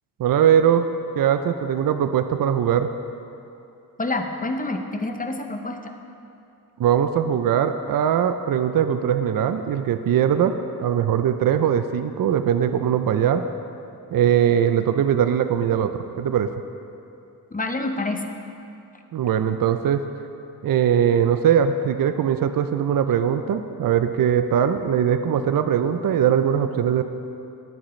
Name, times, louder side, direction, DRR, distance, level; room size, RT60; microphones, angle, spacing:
voice 1, 0.2-0.9 1.2-2.9 6.8-13.4 14.1-16.5 19.1-20.0 20.6-27.0, right 9 dB, 65° right, 9 dB, 0.5 m, -21 dB
voice 2, 4.0-5.9 17.5-18.3, left 2 dB, 20° left, 5 dB, 0.8 m, -27 dB
18.5 x 7.5 x 3.1 m, 2.7 s
wide cardioid pair, 95°, 37 cm